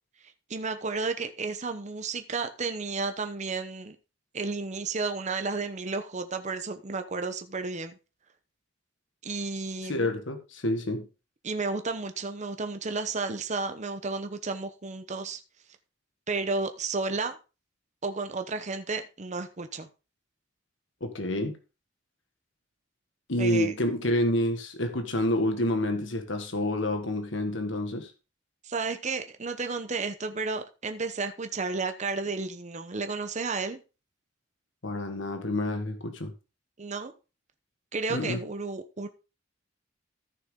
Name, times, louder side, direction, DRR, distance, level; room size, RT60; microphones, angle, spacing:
voice 1, 0.5-4.0 4.3-8.0 9.2-10.1 11.4-15.4 16.3-17.4 18.0-19.9 23.4-23.7 28.6-33.8 36.8-37.1 37.9-39.1, right 4 dB, 40° right, 0.9 m, -32 dB
voice 2, 9.9-11.1 21.0-21.5 23.3-28.1 34.8-36.3 38.1-38.4, left 1 dB, 75° left, 1.5 m, -28 dB
14.0 x 6.2 x 3.7 m
head